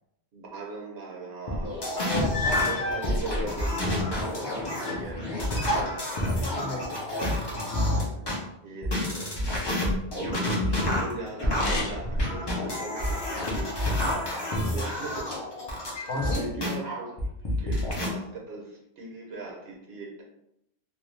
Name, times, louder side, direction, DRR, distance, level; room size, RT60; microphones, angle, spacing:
voice 1, 0.3-1.9 2.4-5.2 8.1-8.3 8.6-9.4 10.1-15.3 15.8-20.2, right 2 dB, 70° right, -1 dB, 0.9 m, -39 dB
sound 1, 1.5-8.4 8.8-16.7 17.2-18.1, left 1 dB, 30° left, 0.5 m, -28 dB
sound 2, 1.7-1.8 2.3-3.1 3.9-5.1 5.3-6.9 11.4-12.2 12.7-13.7 14.5-15.3 15.9-16.7, left 2 dB, 90° left, 1.0 m, -33 dB
voice 2, 1.9-3.0 4.4-5.4 6.2-7.8 9.1-9.3 16.1-16.5, left 2 dB, 65° left, -1 dB, 0.9 m, -36 dB
2.4 x 2.2 x 3.1 m, 0.80 s
omnidirectional pair, 1.1 m